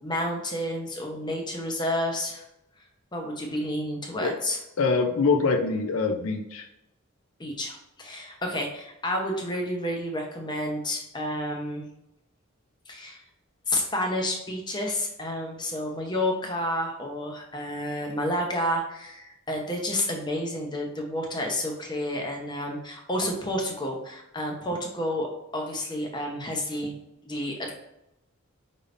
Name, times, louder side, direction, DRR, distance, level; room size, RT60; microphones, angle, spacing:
voice 1, 0.0-2.4 3.1-4.6 7.4-11.8 12.9-13.2 13.7-26.9 27.2-27.7, left 1 dB, 20° left, 1 dB, 0.8 m, -30 dB
voice 2, 4.8-6.7, left 4 dB, 80° left, 4 dB, 0.5 m, -24 dB
5.3 x 3.4 x 2.5 m, 0.85 s
head